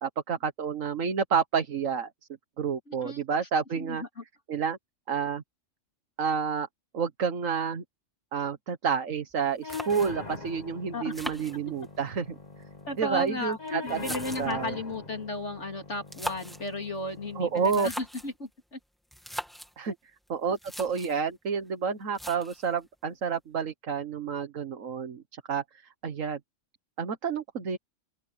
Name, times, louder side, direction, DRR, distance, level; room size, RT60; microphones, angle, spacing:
voice 1, 0.0-2.1 2.6-4.0 4.5-4.8 5.1-5.4 6.2-6.7 6.9-7.8 8.3-12.4 13.0-14.0 14.4-14.8 17.4-17.9 19.8-19.9 20.3-25.6 26.0-26.4 27.0-27.8, right 6 dB, 85° right, 1.7 m, -29 dB
voice 2, 2.9-3.2 3.8-4.2 10.9-11.2 11.6-11.7 12.9-13.6 13.8-18.8 19.9-20.0, left 2 dB, 60° left, 3.9 m, -35 dB
sound 1, 9.3-9.4 9.7-10.4 11.1-12.1 13.0-14.7 15.9-16.7 17.6-18.4 19.1-19.7 20.3-20.4 20.5-21.2 22.1-22.7, equal, ahead, 2.4 m, -40 dB
sound 2, 9.6-17.6, left 3 dB, 35° left, 2.4 m, -42 dB
open air
omnidirectional pair, 1.3 m